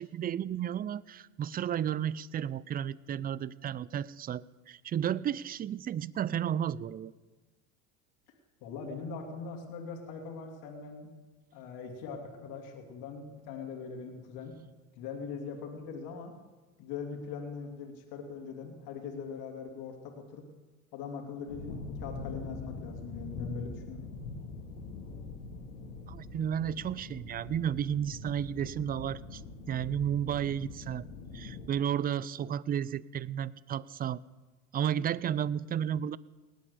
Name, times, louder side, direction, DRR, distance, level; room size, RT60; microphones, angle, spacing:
voice 1, 0.0-7.1 26.1-29.4 29.7-31.1 31.3-34.2 34.7-36.2, right 9 dB, 25° right, 21 dB, 0.4 m, -33 dB
voice 2, 8.6-11.1 11.5-14.6 14.9-16.4 16.8-20.5 20.9-24.0, left 5 dB, 60° left, 2 dB, 2.8 m, -41 dB
sound 1, 21.5-31.7, left 3 dB, 90° left, 2.1 m, -43 dB
18.5 x 8.9 x 6.9 m, 1.2 s
hypercardioid pair, 85°, 42 cm